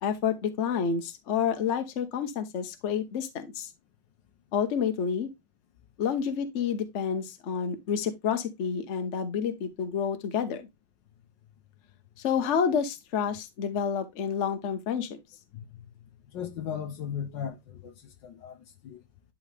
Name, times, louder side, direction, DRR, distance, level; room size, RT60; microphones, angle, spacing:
voice 1, 0.0-3.7 4.5-5.3 6.0-10.7 12.2-15.1, left 7 dB, 50° left, 1.0 m, -29 dB
voice 2, 16.3-17.9 18.2-18.6 18.8-19.0, left 8 dB, 70° left, 1.3 m, -36 dB
10.5 x 3.7 x 3.3 m
omnidirectional pair, 2.3 m